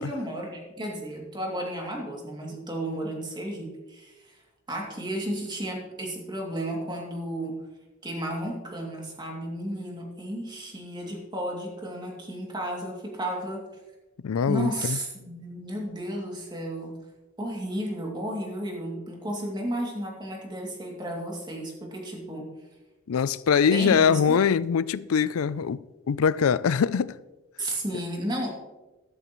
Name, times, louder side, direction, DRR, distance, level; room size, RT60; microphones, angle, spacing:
voice 1, 0.0-4.4 4.7-7.6 8.0-13.6 14.5-17.0 17.4-22.5 23.7-24.4 27.6-28.5, right 1 dB, 20° right, 2.5 m, -33 dB
voice 2, 14.2-15.0 23.1-25.8 26.1-27.1, left 6 dB, 85° left, 0.4 m, -23 dB
13.5 x 12.5 x 3.1 m
head